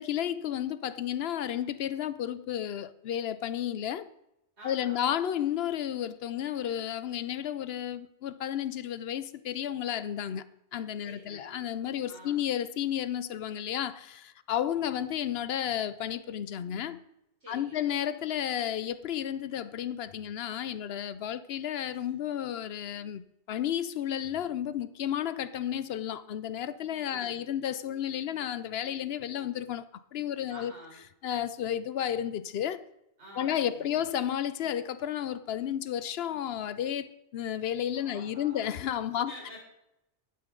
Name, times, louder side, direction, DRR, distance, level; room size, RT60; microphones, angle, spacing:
voice 1, 0.0-4.1 4.6-10.4 10.7-17.0 17.5-29.8 30.1-30.7 31.2-32.8 33.4-37.1 37.3-39.3, left 10 dB, 65° left, 0.8 m, -32 dB
voice 2, 4.6-5.1 11.0-11.6 12.1-12.4 17.4-18.0 27.1-27.6 30.5-31.0 33.2-34.1 37.9-38.8 39.2-39.6, equal, 70° right, 4.5 m, -49 dB
12.0 x 9.5 x 3.8 m
omnidirectional pair, 1.2 m